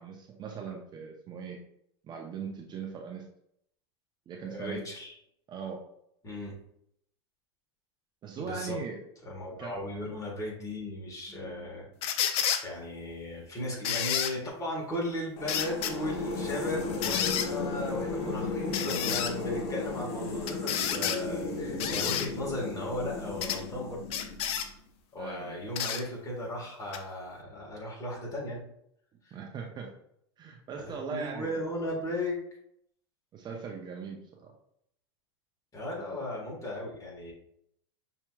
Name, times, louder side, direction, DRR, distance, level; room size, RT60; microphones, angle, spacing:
voice 1, 0.0-1.6 2.0-3.3 4.3-5.0 5.5-5.8 8.2-9.0 9.6-9.7 25.2-25.6 29.3-29.9 30.4-31.6 33.3-34.5, right 6 dB, 30° right, 1 dB, 0.6 m, -39 dB
voice 2, 4.5-5.1 6.2-6.5 8.4-8.8 9.2-11.9 12.6-24.0 25.1-28.6 29.2-29.4 30.8-32.4 35.7-37.3, left 1 dB, 25° left, -3 dB, 1.6 m, -36 dB
sound 1, 12.0-12.6 13.8-14.3 15.5-15.9 17.0-17.5 18.7-19.3 20.5-21.2 21.8-22.3 23.4-23.6 24.1-24.7 25.7-26.0 26.9-27.0, left 9 dB, 45° left, 0.4 m, -30 dB
sound 2, 15.4-24.7, left 3 dB, 70° left, 1.1 m, -35 dB
5.8 x 2.9 x 2.3 m, 0.72 s
hypercardioid pair, 105°, 14 cm